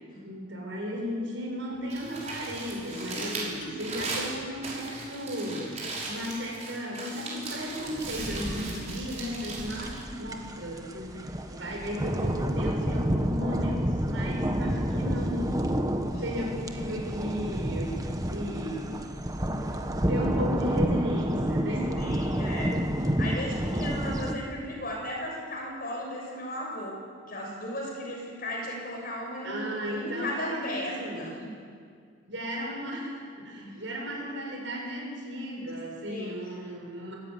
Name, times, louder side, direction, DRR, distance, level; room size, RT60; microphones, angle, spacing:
voice 1, 0.2-5.7 6.1-15.6 16.2-18.9 19.6-22.0 29.4-31.3 32.2-37.1, equal, 75° right, -1 dB, 7.3 m, -35 dB
Crumpling crinkling, 1.7-10.9, right 3 dB, 35° right, 6.3 m, -38 dB
sound 1, 2.5-6.5 8.3-8.8, equal, 65° left, 4.8 m, -47 dB
voice 2, 3.2-3.5 16.1-16.2 21.9-31.5 33.6-33.8 36.1-36.4, left 1 dB, 50° left, -1 dB, 6.7 m, -36 dB
sound 2, 7.9-24.3, equal, 20° right, 1.3 m, -30 dB
25.5 x 14.5 x 9.5 m, 2.1 s
head